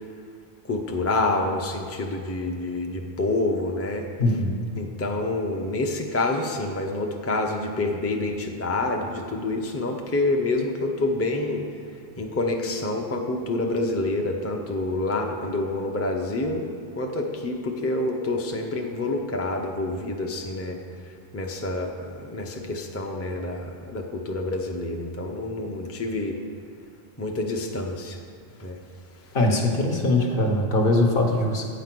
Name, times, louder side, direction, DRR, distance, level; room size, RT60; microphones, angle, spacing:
voice 1, 0.7-4.1 4.8-11.7 12.2-20.8 21.3-26.4 27.2-28.2 28.6-28.8, left 2 dB, 20° left, 2 dB, 0.5 m, -27 dB
voice 2, 4.2-4.6 29.3-31.6, left 2 dB, 60° left, 1 dB, 1.2 m, -21 dB
9.0 x 5.2 x 6.0 m, 2.3 s
omnidirectional pair, 1.1 m